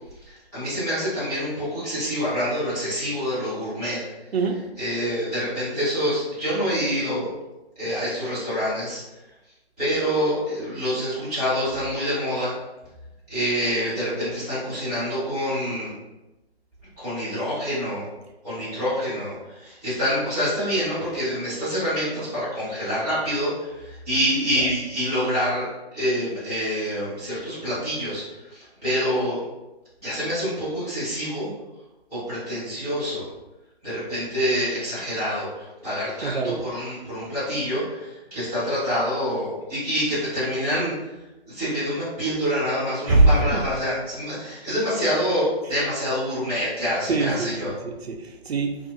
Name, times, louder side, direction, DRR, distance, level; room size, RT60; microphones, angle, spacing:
voice 1, 0.2-4.0 4.8-7.3 7.8-9.0 9.8-12.5 13.3-16.0 17.0-18.0 18.4-29.4 30.0-31.5 32.1-33.3 33.8-41.1 41.4-47.8, equal, 5° left, -12 dB, 0.7 m, -26 dB
voice 2, 36.2-36.6 43.1-43.6 47.1-48.8, right 2 dB, 75° right, 3 dB, 0.5 m, -22 dB
2.6 x 2.3 x 2.6 m, 1.0 s
figure-of-eight pair, 160°, 32 cm